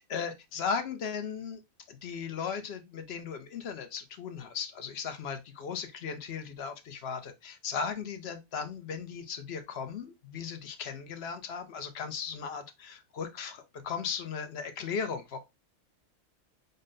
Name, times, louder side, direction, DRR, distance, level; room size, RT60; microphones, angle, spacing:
voice 1, 0.0-1.6 1.9-15.4, left 6 dB, 55° left, 0.8 m, -37 dB
5.3 x 2.2 x 3.7 m
omnidirectional pair, 1.5 m